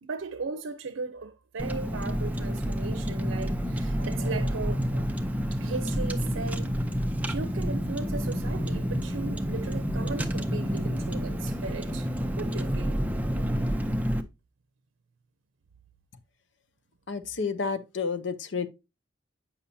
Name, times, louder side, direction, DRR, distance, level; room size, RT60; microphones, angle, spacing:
voice 1, 0.0-5.1 5.5-6.8 7.2-12.1 12.4-13.0, right 4 dB, 85° right, 0.6 m, -37 dB
Car, 1.6-14.2, equal, 10° right, 0.5 m, -29 dB
voice 2, 17.1-18.7, left 5 dB, 65° left, 0.7 m, -30 dB
8.3 x 5.5 x 2.7 m
head